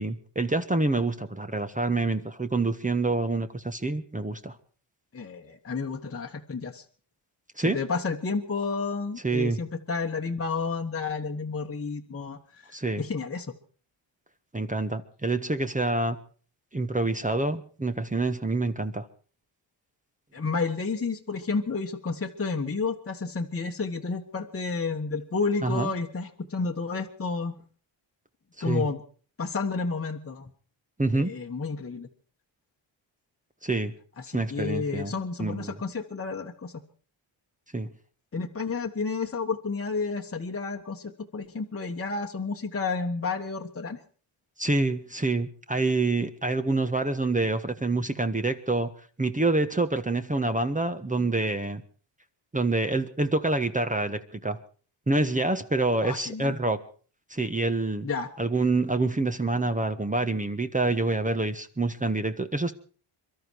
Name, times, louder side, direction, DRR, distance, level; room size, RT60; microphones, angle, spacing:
voice 1, 0.0-4.5 7.6-7.8 9.2-9.6 12.7-13.0 14.5-16.2 16.7-19.1 25.6-25.9 28.6-28.9 31.0-31.3 33.6-33.9 34.3-35.1 35.4-35.8 37.7-37.9 44.6-48.9 49.2-51.8 52.5-54.6 55.1-56.8 57.3-58.1 58.4-62.7, right 2 dB, 15° right, 8 dB, 1.3 m, -27 dB
voice 2, 5.1-6.8 7.6-13.5 20.3-27.6 28.6-29.0 29.4-30.5 31.1-32.1 34.2-36.8 38.3-44.0 56.0-56.5 58.0-58.3, left 4 dB, 25° left, 2 dB, 1.4 m, -31 dB
23.0 x 12.5 x 4.7 m, 0.42 s
cardioid pair, 70°, 50 cm